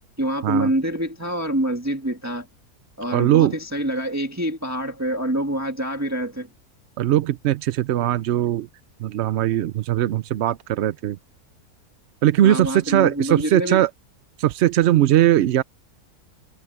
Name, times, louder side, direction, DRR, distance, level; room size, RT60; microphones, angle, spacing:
voice 1, 0.2-2.5 3.0-6.5 12.4-13.8, right 1 dB, 10° right, 1.7 m, -26 dB
voice 2, 3.1-3.5 7.0-8.7 9.0-11.2 12.2-13.9 14.4-15.6, right 12 dB, 70° right, 0.6 m, -19 dB
omnidirectional pair, 1.6 m